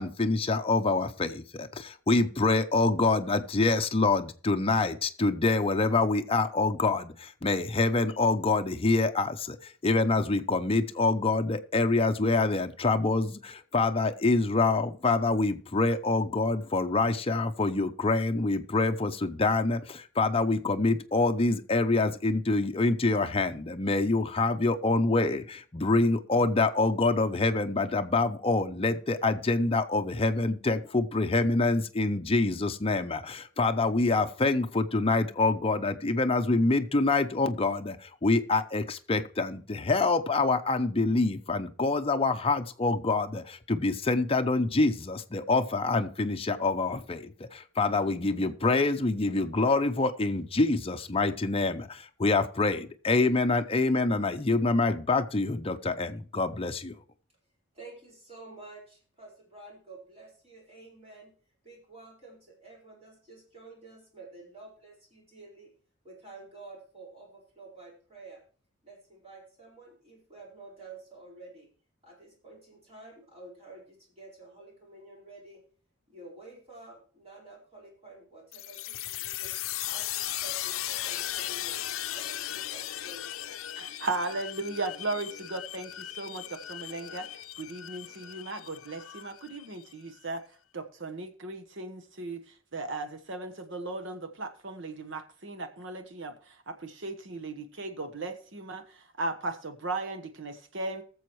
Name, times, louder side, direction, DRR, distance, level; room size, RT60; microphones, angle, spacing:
voice 1, 0.0-57.0, left 3 dB, 30° left, 0.7 m, -26 dB
voice 2, 57.7-61.3 61.6-65.7 66.0-68.4 68.8-71.7 72.0-75.6 76.1-79.5 79.8-81.8 82.1-83.5, right 2 dB, 30° right, 4.6 m, -50 dB
sound 1, 78.5-89.9, left 13 dB, 90° left, 0.5 m, -37 dB
voice 3, 83.8-87.3 87.6-90.4 90.7-92.4 92.7-98.8 99.2-101.0, right 2 dB, 65° right, 1.2 m, -36 dB
20.5 x 7.0 x 3.1 m
head